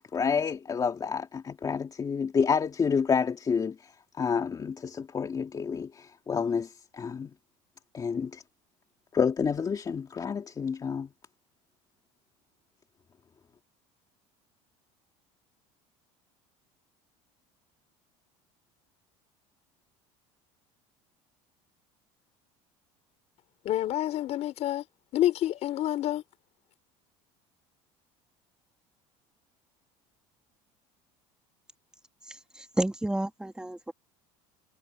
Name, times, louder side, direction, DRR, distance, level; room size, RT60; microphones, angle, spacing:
voice 1, 0.0-3.9 4.2-7.3 7.9-8.4 9.1-11.1, left 6 dB, 25° left, 2.5 m, -29 dB
voice 2, 23.6-24.8 25.1-26.2, left 13 dB, 50° left, 4.7 m, -28 dB
voice 3, 32.3-33.9, right 1 dB, 5° right, 2.7 m, -31 dB
supercardioid pair, 110°, 14 cm